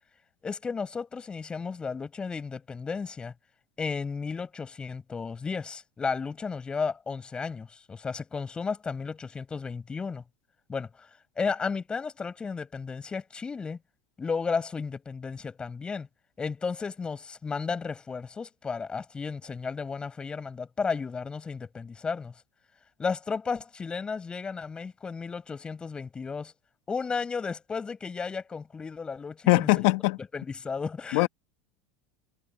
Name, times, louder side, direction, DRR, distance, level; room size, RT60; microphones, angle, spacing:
voice 1, 0.4-3.3 3.8-10.2 10.7-11.1 11.4-13.8 14.2-16.1 16.4-22.3 23.0-26.5 26.9-29.9 30.3-31.3, left 5 dB, 20° left, 7.3 m, -33 dB
voice 2, 29.5-30.2 31.1-31.3, left 23 dB, 65° left, 1.7 m, -21 dB
hypercardioid pair, 100°, 4 cm